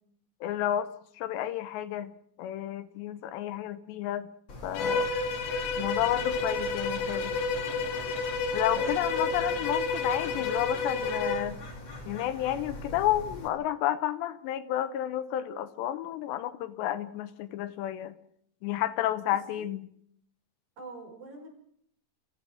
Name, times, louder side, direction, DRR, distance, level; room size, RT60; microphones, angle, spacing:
voice 1, 0.4-2.1 2.4-4.3 4.6-5.1 5.8-7.3 8.5-11.6 12.0-18.1 18.6-19.9, left 12 dB, 80° left, 12 dB, 3.1 m, -31 dB
Bird, 4.5-13.5, left 1 dB, 30° left, 2.6 m, -43 dB
Bowed string instrument, 4.7-11.5, left 4 dB, 60° left, 2.5 m, -30 dB
voice 2, 8.7-9.4 19.2-19.7 20.8-21.5, right 2 dB, 55° right, 0 dB, 7.2 m, -45 dB
29.0 x 15.5 x 6.2 m, 0.68 s
omnidirectional pair, 5.0 m